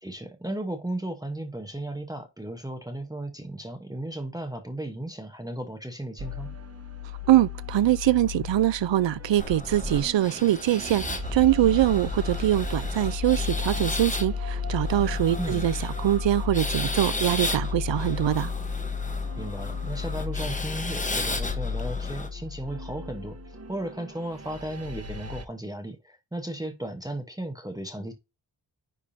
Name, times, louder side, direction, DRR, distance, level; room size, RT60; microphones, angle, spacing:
voice 1, 0.0-6.5 15.4-15.7 19.3-28.1, right 1 dB, 10° right, 1.0 m, -35 dB
sound 1, 6.2-25.4, left 5 dB, 35° right, 0.8 m, -34 dB
voice 2, 7.3-18.5, right 13 dB, 85° right, 0.5 m, -23 dB
sound 2, 9.4-22.3, left 2 dB, 15° left, 1.0 m, -35 dB
10.0 x 3.6 x 2.7 m
wide cardioid pair, 145°, 44 cm